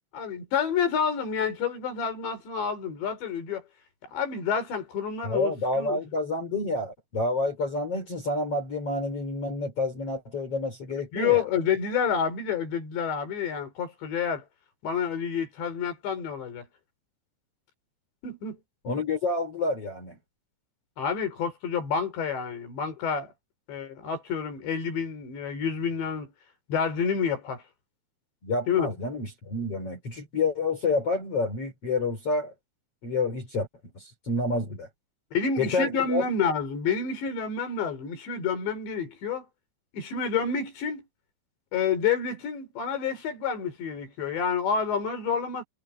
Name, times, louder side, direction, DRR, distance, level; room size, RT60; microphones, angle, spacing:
voice 1, 0.1-3.6 4.1-6.0 11.1-14.4 14.8-16.7 18.2-18.6 21.0-23.3 23.7-26.3 26.7-27.6 28.7-28.9 35.3-39.4 39.9-41.0 41.7-45.6, left 6 dB, 70° left, 6.4 m, -29 dB
voice 2, 5.2-11.4 18.8-20.2 28.4-32.5 33.0-33.7 33.9-34.9 35.6-36.2, left 3 dB, 35° left, 4.7 m, -28 dB
omnidirectional pair, 5.3 m